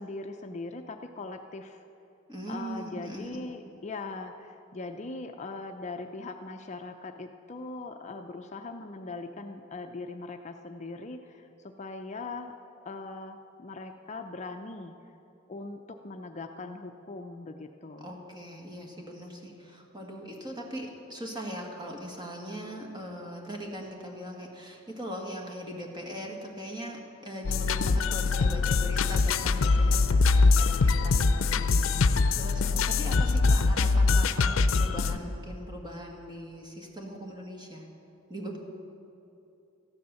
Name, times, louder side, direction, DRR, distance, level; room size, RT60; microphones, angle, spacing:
voice 1, 0.0-1.8 2.5-12.5 12.9-14.9 15.5-18.1, left 3 dB, 35° left, 5 dB, 0.5 m, -40 dB
voice 2, 2.3-3.5 18.0-37.9 38.3-38.6, equal, 20° right, 0 dB, 1.9 m, -40 dB
sound 1, 27.4-35.2, left 4 dB, 80° left, 0.5 m, -23 dB
14.0 x 10.5 x 6.9 m, 2.8 s
head